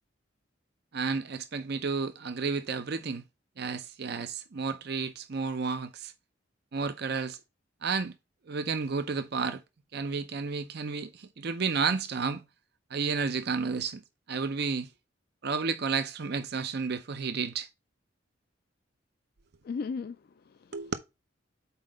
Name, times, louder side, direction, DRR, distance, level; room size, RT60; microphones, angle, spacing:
voice 1, 0.9-3.2 3.6-6.1 6.7-7.4 7.8-8.1 8.5-9.6 9.9-12.4 12.9-14.0 14.3-14.9 15.4-17.7 20.7-20.9, right 5 dB, 60° right, 0.6 m, -31 dB
voice 2, 19.6-20.9, left 5 dB, 55° left, 0.3 m, -37 dB
5.7 x 4.4 x 4.9 m
head